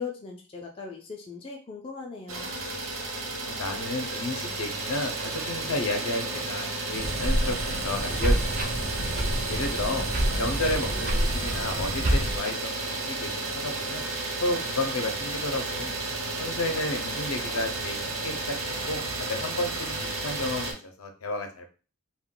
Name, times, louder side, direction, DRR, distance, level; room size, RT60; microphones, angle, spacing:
voice 1, 0.0-2.5, left 5 dB, 25° left, 0 dB, 0.3 m, -39 dB
Idling, 2.3-20.7, right 2 dB, 70° right, 0.7 m, -32 dB
voice 2, 3.5-7.6 7.8-8.6 9.5-10.1 10.4-14.1 14.4-15.9 16.4-21.7, left 2 dB, 70° left, 4 dB, 0.5 m, -32 dB
sound 1, 6.9-12.4, right 1 dB, 40° right, 0.5 m, -28 dB
2.2 x 2.2 x 3.6 m, 0.37 s
head